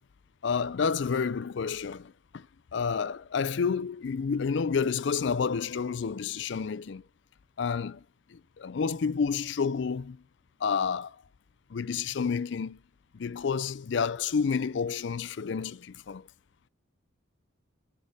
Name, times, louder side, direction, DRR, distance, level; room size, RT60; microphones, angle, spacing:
voice 1, 0.4-2.5 2.7-7.0 7.6-8.0 8.3-10.2 10.6-11.2 11.7-12.8 13.1-16.3, left 5 dB, 60° left, 0.4 m, -30 dB
13.0 x 6.4 x 5.3 m
head